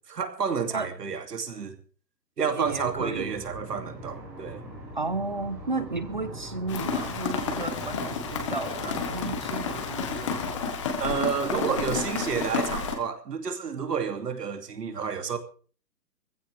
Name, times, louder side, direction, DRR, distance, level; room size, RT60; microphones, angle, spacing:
voice 1, 0.1-1.8 2.4-4.6 11.0-15.4, right 6 dB, 70° right, 2.8 m, -30 dB
voice 2, 2.5-3.4 4.9-10.7 11.4-11.9, right 3 dB, 30° right, 0.6 m, -34 dB
sound 1, 2.6-10.5, right 1 dB, 5° right, 1.3 m, -42 dB
Rain, 6.7-12.9, left 5 dB, 20° left, 1.4 m, -31 dB
20.0 x 15.5 x 3.5 m
hypercardioid pair, 170°, 50 cm